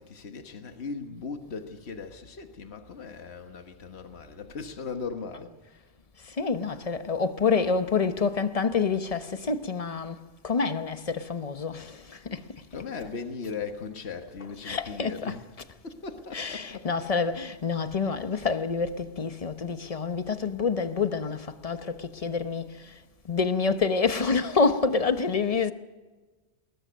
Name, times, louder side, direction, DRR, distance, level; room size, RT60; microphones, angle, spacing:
voice 1, 0.0-5.6 12.3-12.4 12.7-15.5 15.8-16.9, left 5 dB, 70° left, 1.6 m, -38 dB
voice 2, 6.2-10.2 10.4-12.6 14.6-15.4 16.3-22.9 23.2-25.7, left 5 dB, 35° left, 1.0 m, -27 dB
21.0 x 20.5 x 6.3 m
omnidirectional pair, 1.1 m